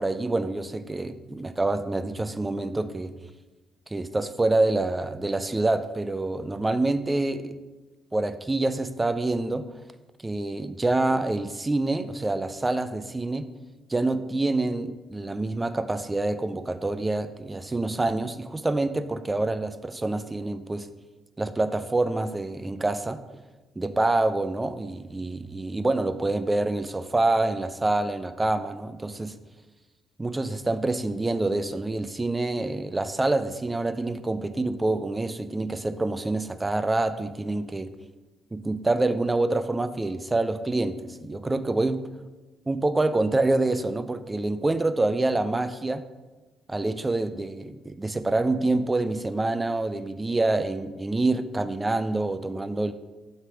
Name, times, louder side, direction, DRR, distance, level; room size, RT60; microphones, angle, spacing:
voice 1, 0.0-3.1 3.9-7.6 8.1-9.7 10.2-13.5 13.9-20.9 21.4-23.2 23.8-29.3 30.2-37.9 38.5-42.1 42.7-46.0 46.7-52.9, right 2 dB, 15° right, 11 dB, 0.4 m, -26 dB
6.5 x 3.4 x 4.6 m, 1.2 s
cardioid pair, 100°, 0 cm